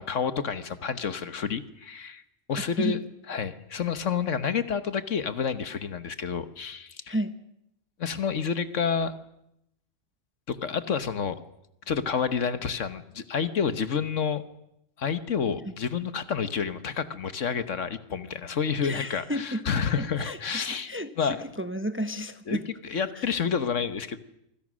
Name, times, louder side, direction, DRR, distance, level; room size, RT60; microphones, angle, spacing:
voice 1, 0.0-2.2 2.5-3.0 3.3-7.1 8.0-9.1 10.5-11.4 11.9-14.4 15.0-20.9 21.2-21.4 22.5-22.6 22.9-24.2, left 6 dB, 65° left, 12 dB, 1.5 m, -29 dB
voice 2, 2.6-3.0 7.1-7.3 18.8-22.7 23.1-23.2, equal, 10° right, 10 dB, 0.9 m, -33 dB
26.0 x 25.0 x 6.3 m, 0.82 s
omnidirectional pair, 1.4 m